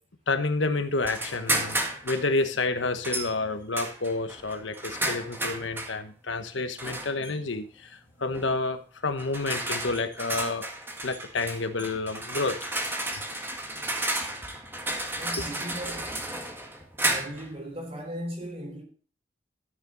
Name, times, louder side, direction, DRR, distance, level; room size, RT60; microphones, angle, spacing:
voice 1, 0.3-1.8 2.0-10.7 11.0-12.6 15.4-15.5, left 3 dB, 85° left, 1.2 m, -29 dB
sound 1, 1.0-2.3 3.0-3.3 3.7-6.0 6.8-7.3 8.3-8.6 9.2-17.5, right 1 dB, 10° right, 1.7 m, -32 dB
voice 2, 15.2-16.2 17.1-18.8, equal, 35° right, 3.8 m, -37 dB
13.0 x 7.1 x 4.0 m
head